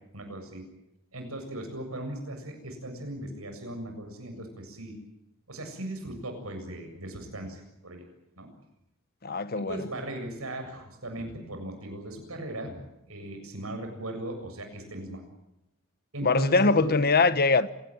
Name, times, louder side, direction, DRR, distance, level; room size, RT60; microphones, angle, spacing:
voice 1, 0.1-0.6 1.1-5.0 5.5-8.1 8.4-8.5 9.5-15.2 16.1-17.0, right 1 dB, 90° right, 7.4 m, -38 dB
voice 2, 9.2-9.8 16.2-17.7, left 3 dB, 45° left, 1.2 m, -22 dB
28.0 x 18.0 x 9.0 m
head